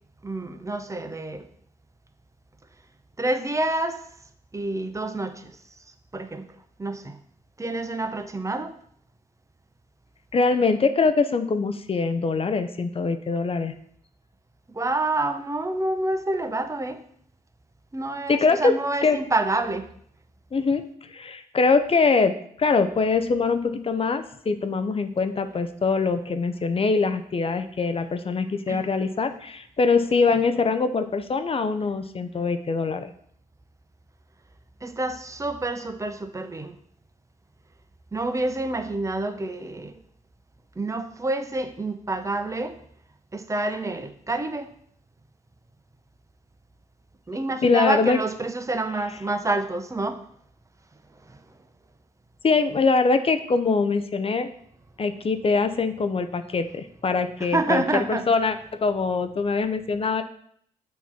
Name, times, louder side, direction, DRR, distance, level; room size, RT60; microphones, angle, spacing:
voice 1, 0.2-1.5 3.2-4.0 4.5-5.5 6.1-6.4 6.8-7.2 7.6-8.7 14.7-17.0 17.9-19.9 28.7-28.8 34.8-36.8 38.1-40.0 40.8-42.7 43.3-44.7 47.3-50.2 51.3-51.4 57.4-58.3, right 2 dB, 20° right, 9 dB, 0.8 m, -28 dB
voice 2, 10.3-13.7 18.3-18.8 19.0-19.2 20.5-20.8 21.1-33.1 47.6-48.2 52.4-54.5 55.0-60.2, left 4 dB, 35° left, 9 dB, 0.7 m, -23 dB
7.1 x 3.0 x 5.6 m, 0.65 s
hypercardioid pair, 50°, 16 cm